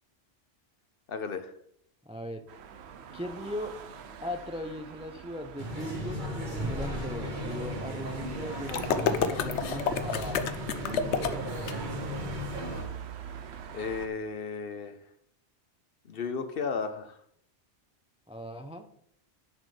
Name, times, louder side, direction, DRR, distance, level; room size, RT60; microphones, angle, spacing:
voice 1, 1.1-1.5 13.7-15.0 16.1-17.2, left 5 dB, 60° left, 9 dB, 0.9 m, -34 dB
voice 2, 2.0-2.6 3.1-3.7 4.2-11.5 18.3-18.9, equal, 10° right, 7 dB, 0.3 m, -39 dB
sound 1, 2.5-14.1, right 7 dB, 70° right, 0.9 m, -44 dB
sound 2, 5.6-12.8, equal, 45° right, 1.7 m, -36 dB
sound 3, 8.7-11.7, left 7 dB, 80° left, 1.0 m, -29 dB
10.5 x 6.4 x 3.3 m, 0.67 s
omnidirectional pair, 1.2 m